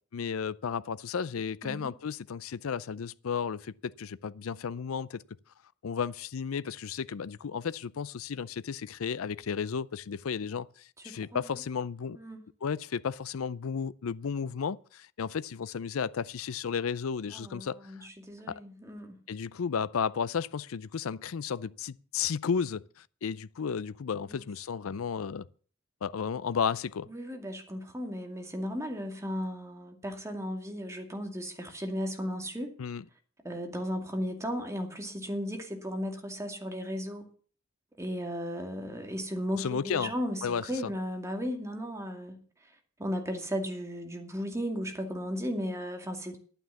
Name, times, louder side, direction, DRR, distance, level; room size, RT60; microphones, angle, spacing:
voice 1, 0.1-5.2 5.8-12.2 12.6-18.1 18.5-18.6 19.3-25.5 26.0-27.1 32.8-33.0 39.6-40.1 40.4-40.9, left 6 dB, 80° left, 0.5 m, -33 dB
voice 2, 11.0-11.4 12.1-12.4 17.3-19.1 24.3-24.4 27.1-32.7 33.4-37.3 38.0-42.4 43.0-46.4, equal, 15° right, 2.3 m, -35 dB
11.5 x 9.2 x 7.0 m
head